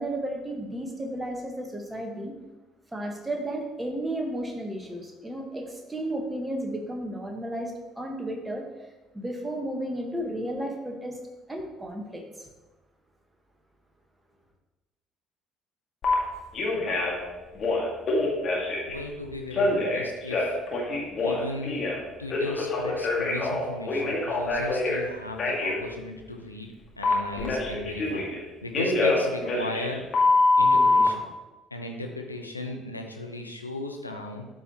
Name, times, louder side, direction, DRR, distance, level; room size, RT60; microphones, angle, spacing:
voice 1, 0.0-2.3 2.9-8.6 9.1-11.2 11.5-12.5, right 1 dB, 10° right, 2 dB, 1.4 m, -33 dB
Telephone, 16.0-16.1 16.5-17.2 17.5-18.9 19.5-22.0 22.3-25.0 25.4-25.7 27.0-28.4 28.7-31.1, left 2 dB, 40° left, 1.9 m, -24 dB
voice 2, 18.8-20.6 21.2-21.9 22.2-28.3 28.6-30.1 30.6-31.2 31.7-34.5, left 2 dB, 90° left, 3 dB, 0.6 m, -36 dB
12.5 x 4.6 x 3.0 m, 1.1 s
figure-of-eight pair, 55°, 0 cm